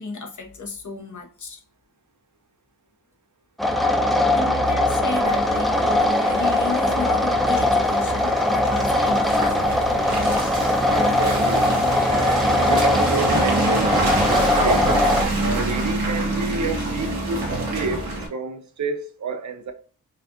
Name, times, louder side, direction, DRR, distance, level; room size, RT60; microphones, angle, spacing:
voice 1, 0.0-1.6 4.3-9.8, left 4 dB, 55° left, 1.0 m, -33 dB
sound 1, 3.6-15.2, left 1 dB, ahead, 0.3 m, -21 dB
Car passing by / Engine, 5.1-18.3, right 2 dB, 90° right, 1.4 m, -26 dB
voice 2, 10.8-11.7 12.0-14.9 15.2-19.7, right 4 dB, 55° right, 0.5 m, -30 dB
5.5 x 2.4 x 2.7 m
wide cardioid pair, 160°, 36 cm